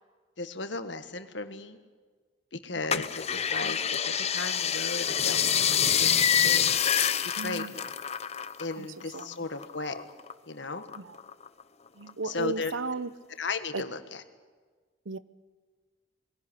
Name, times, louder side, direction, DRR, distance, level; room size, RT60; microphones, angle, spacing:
voice 1, 0.4-1.8 2.5-6.1 6.4-6.8 7.2-7.9 8.6-10.0 10.5-10.8 12.2-12.7 13.4-14.2, left 3 dB, 65° left, 9 dB, 1.6 m, -36 dB
sound 1, 2.9-8.7 9.0-10.3 10.8-11.6 12.1-12.2, left 8 dB, 35° left, 0.8 m, -26 dB
voice 2, 7.4-7.8 8.8-8.9 9.1-9.5 11.0-11.2 11.9-13.1 13.7-13.9 15.0-15.2, right 3 dB, 80° right, 16 dB, 0.8 m, -35 dB
22.0 x 16.5 x 9.8 m, 1.5 s
head